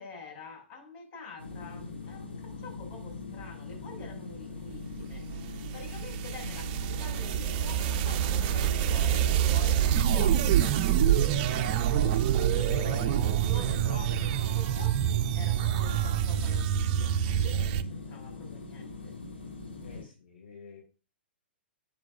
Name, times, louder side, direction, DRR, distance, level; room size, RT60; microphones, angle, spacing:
voice 1, 0.0-5.3 5.7-11.3 12.6-19.2, left 3 dB, 40° left, 5.6 m, -47 dB
sound 1, 1.4-20.0, left 4 dB, 90° left, 3.6 m, -42 dB
sound 2, 5.0-17.8, right 10 dB, 40° right, 0.7 m, -26 dB
voice 2, 11.0-12.1 12.7-13.4 19.8-20.8, left 5 dB, 65° left, 3.9 m, -47 dB
10.5 x 9.3 x 2.5 m
figure-of-eight pair, 110°, 6 cm